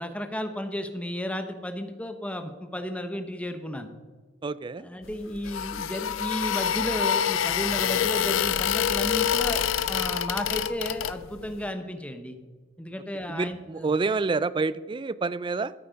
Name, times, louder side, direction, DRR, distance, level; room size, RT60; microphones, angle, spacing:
voice 1, 0.0-3.9 4.8-12.4 12.8-13.9, equal, 5° left, 7 dB, 1.0 m, -33 dB
voice 2, 4.4-4.9 13.3-15.7, right 4 dB, 25° right, 17 dB, 0.3 m, -28 dB
sound 1, 5.1-11.5, left 9 dB, 85° left, 0.5 m, -26 dB
13.5 x 8.6 x 5.3 m, 1.4 s
head